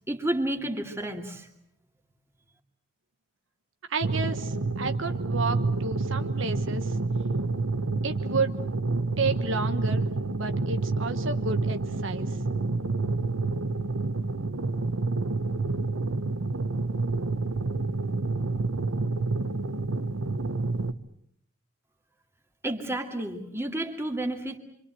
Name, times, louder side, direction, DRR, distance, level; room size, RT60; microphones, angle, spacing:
voice 1, 0.1-1.5 22.6-24.6, right 1 dB, 10° right, 3 dB, 2.5 m, -31 dB
voice 2, 3.9-7.0 8.0-8.6 9.2-10.1 10.4-12.4, right 4 dB, 70° right, 7 dB, 1.3 m, -31 dB
sound 1, 4.0-20.9, right 3 dB, 85° right, 1.1 m, -28 dB
26.0 x 26.0 x 7.8 m, 0.69 s
head